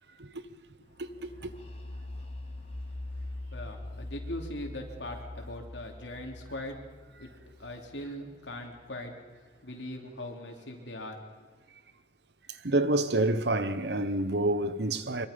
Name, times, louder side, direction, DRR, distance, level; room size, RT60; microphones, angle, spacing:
sound 1, 0.9-8.7, left 1 dB, 35° left, 2.9 m, -43 dB
voice 1, 1.0-1.5 12.5-15.3, right 2 dB, 65° right, 1.0 m, -28 dB
voice 2, 3.2-6.9 7.2-9.1 9.6-11.2, left 1 dB, 80° left, 3.1 m, -41 dB
24.0 x 23.0 x 5.3 m
head